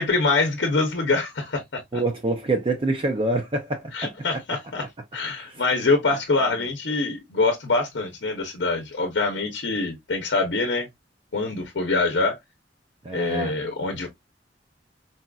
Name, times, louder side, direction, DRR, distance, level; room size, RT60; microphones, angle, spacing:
voice 1, 0.0-1.6 1.9-2.0 3.9-4.8 5.1-10.9 11.3-12.4 13.1-14.1, left 3 dB, 70° left, 0.8 m, -24 dB
voice 2, 1.9-4.1 5.3-5.6 13.0-13.6, right 2 dB, 30° right, 0.5 m, -26 dB
4.1 x 2.5 x 2.2 m
head